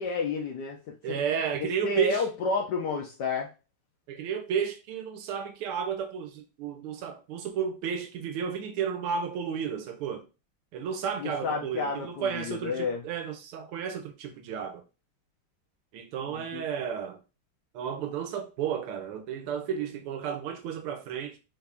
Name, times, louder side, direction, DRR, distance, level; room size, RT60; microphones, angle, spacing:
voice 1, 0.0-1.2 1.6-3.5 11.2-13.0 16.3-16.6, left 4 dB, 75° left, 1.0 m, -31 dB
voice 2, 1.0-2.2 4.1-10.2 10.7-14.8 15.9-17.2 17.7-21.4, right 7 dB, 90° right, 1.5 m, -32 dB
4.3 x 2.5 x 3.4 m
omnidirectional pair, 2.4 m